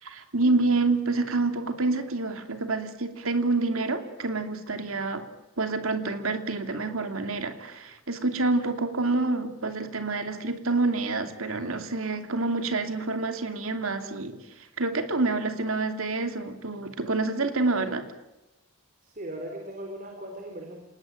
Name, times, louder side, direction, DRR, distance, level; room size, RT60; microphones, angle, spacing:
voice 1, 0.0-5.2 5.6-18.0, right 3 dB, 75° right, 7 dB, 2.8 m, -27 dB
voice 2, 19.0-20.8, right 1 dB, 40° right, 3 dB, 4.0 m, -38 dB
29.0 x 19.5 x 9.2 m, 0.98 s
head